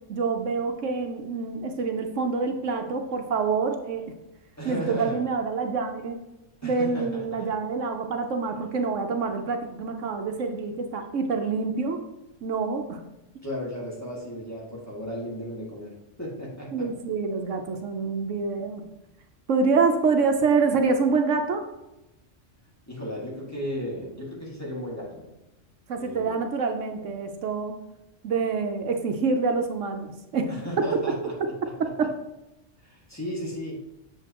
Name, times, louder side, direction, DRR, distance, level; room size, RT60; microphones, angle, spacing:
voice 1, 0.1-4.1 4.6-6.2 6.6-12.0 12.4-13.0 16.7-18.8 19.5-21.6 25.9-27.7 28.2-30.5 30.8-30.9 31.4-31.5 31.8-32.1, right 4 dB, 75° right, 5 dB, 1.1 m, -26 dB
voice 2, 4.6-5.2 6.6-7.5 13.4-15.9 16.2-16.9 22.9-25.3 26.0-26.4 30.5-31.3 31.6-31.7 32.8-33.8, equal, 10° left, -5 dB, 1.9 m, -35 dB
8.0 x 7.0 x 2.9 m, 0.95 s
omnidirectional pair, 1.3 m